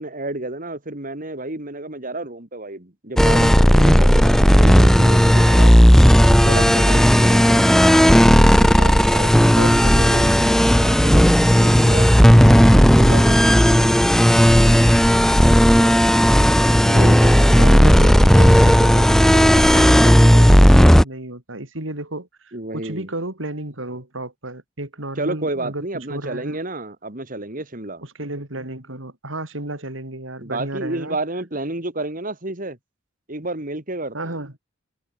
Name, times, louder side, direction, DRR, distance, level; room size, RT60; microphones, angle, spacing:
voice 1, 0.0-5.8 6.3-7.7 8.6-12.1 13.0-13.6 16.7-17.6 22.5-23.1 25.2-28.0 30.4-32.8 33.3-34.4, right 2 dB, 45° right, 3.0 m, -31 dB
sound 1, 3.2-21.0, equal, ahead, 0.8 m, -13 dB
voice 2, 9.6-10.4 13.6-14.0 17.5-26.6 28.0-31.2 34.1-34.5, right 2 dB, 85° right, 4.6 m, -32 dB
head